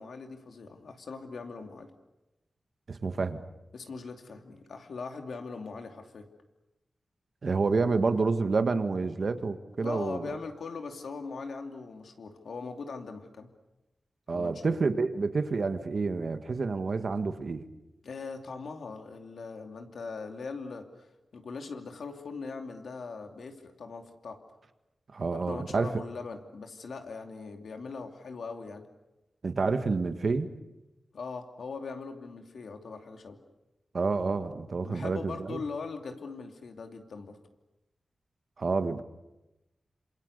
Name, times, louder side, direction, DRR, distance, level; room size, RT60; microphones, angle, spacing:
voice 1, 0.0-1.9 3.7-6.3 9.8-13.5 14.3-14.8 18.0-21.1 21.3-24.4 25.3-28.9 31.1-33.4 34.8-37.4, left 4 dB, 80° left, 4 dB, 2.8 m, -40 dB
voice 2, 2.9-3.4 7.4-10.3 14.3-17.7 25.1-25.9 29.4-30.5 33.9-35.6 38.6-39.0, right 4 dB, 50° right, 8 dB, 1.7 m, -29 dB
27.5 x 27.0 x 6.8 m, 0.99 s
wide cardioid pair, 145°, 0 cm